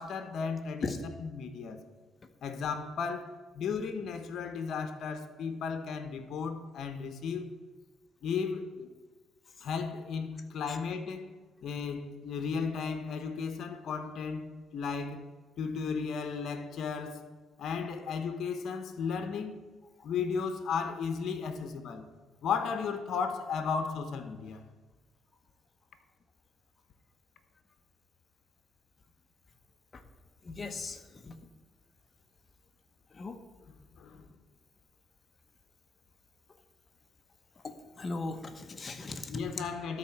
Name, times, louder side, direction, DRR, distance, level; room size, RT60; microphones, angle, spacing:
voice 1, 0.0-1.8 2.4-7.5 8.2-8.9 9.6-11.3 11.6-15.2 15.6-17.3 17.6-19.6 20.0-22.0 22.4-24.6 33.7-34.2 39.3-40.0, left 5 dB, 70° left, 0.9 m, -35 dB
voice 2, 30.5-31.0 31.3-31.4 33.2-33.4 38.0-39.2, left 3 dB, 35° left, 1.0 m, -37 dB
13.0 x 4.3 x 5.9 m
cardioid pair, 90°, 0 cm